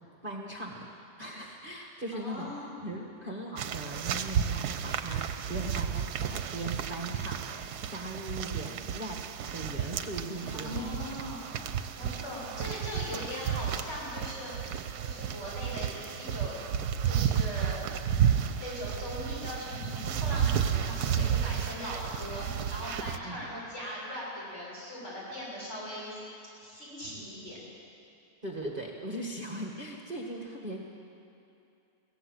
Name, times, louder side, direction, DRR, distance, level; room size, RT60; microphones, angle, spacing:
voice 1, 0.2-0.9 1.2-11.0 23.2-23.4 28.4-30.8, right 1 dB, 30° right, 0 dB, 1.7 m, -39 dB
voice 2, 2.1-2.7 10.3-11.4 11.9-14.5 15.0-16.6 17.0-17.8 18.6-26.2 26.6-27.6, equal, 40° left, -6 dB, 7.5 m, -40 dB
sound 1, 3.6-23.2, right 8 dB, 70° right, 1.3 m, -32 dB
22.5 x 17.0 x 8.1 m, 2.7 s
omnidirectional pair, 1.8 m